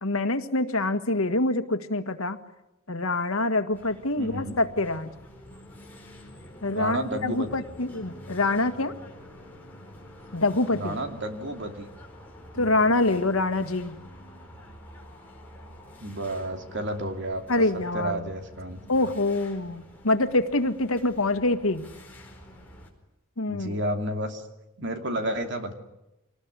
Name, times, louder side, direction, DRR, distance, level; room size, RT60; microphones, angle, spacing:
voice 1, 0.0-2.4 2.9-5.1 6.6-8.9 10.3-11.0 12.6-14.0 17.5-18.3 18.9-21.8 23.4-23.8, left 2 dB, 85° left, 8 dB, 1.9 m, -25 dB
sound 1, 3.7-22.9, left 1 dB, 10° left, 4.7 m, -48 dB
voice 2, 4.2-4.6 6.7-7.5 10.7-11.9 12.5-12.9 16.0-17.6 17.9-18.8 23.5-24.4 24.8-25.7, right 1 dB, 55° right, 6 dB, 2.9 m, -31 dB
26.5 x 20.0 x 10.0 m, 0.94 s
head